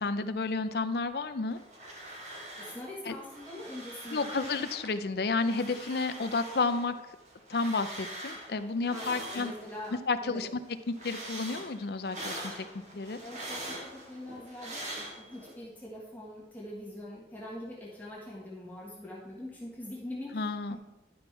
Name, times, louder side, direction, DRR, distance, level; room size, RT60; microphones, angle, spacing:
voice 1, 0.0-1.6 3.0-3.1 4.1-7.0 7.5-9.5 10.1-10.6 10.9-12.7 12.9-13.2 20.3-20.8, left 3 dB, 60° left, 11 dB, 0.5 m, -31 dB
sound 1, 1.5-2.9 3.1-4.9 5.3-10.0 10.4-15.5, right 1 dB, 40° right, 1.7 m, -43 dB
voice 2, 2.6-4.3 8.9-9.9 10.2-10.4 13.2-20.8, left 1 dB, 10° left, -5 dB, 1.3 m, -43 dB
11.0 x 5.3 x 4.5 m, 1.0 s
head